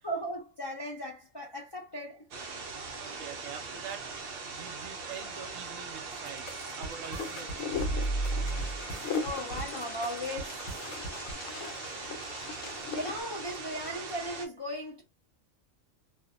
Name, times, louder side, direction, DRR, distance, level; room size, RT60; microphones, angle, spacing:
voice 1, 0.0-2.3 9.2-10.6 12.9-15.0, equal, 45° left, 0.3 m, -37 dB
sound 1, 2.3-14.5, right 4 dB, 60° right, 0.6 m, -41 dB
voice 2, 3.0-4.1 4.5-8.3, right 8 dB, 80° right, 1.0 m, -45 dB
sound 2, 6.3-11.3, right 2 dB, 65° left, 1.0 m, -35 dB
Wind, 7.2-13.2, left 6 dB, 85° left, 1.1 m, -39 dB
2.5 x 2.1 x 2.5 m
omnidirectional pair, 1.3 m